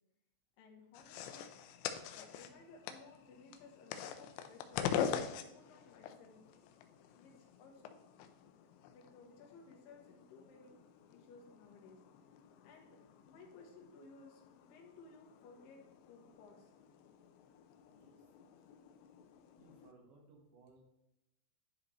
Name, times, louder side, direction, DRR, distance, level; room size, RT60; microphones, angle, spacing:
voice 1, 0.6-1.5 2.1-4.9 5.3-6.4 7.2-7.9 8.9-10.8 11.1-12.0 12.6-15.8 16.1-16.7, left 4 dB, 65° left, 1 dB, 2.5 m, -58 dB
sound 1, 0.9-19.9, left 8 dB, 85° left, 2.8 m, -45 dB
voice 2, 17.9-18.2 19.6-20.8, right 2 dB, 75° right, 0 dB, 3.7 m, -63 dB
10.5 x 5.0 x 3.2 m, 0.89 s
omnidirectional pair, 5.4 m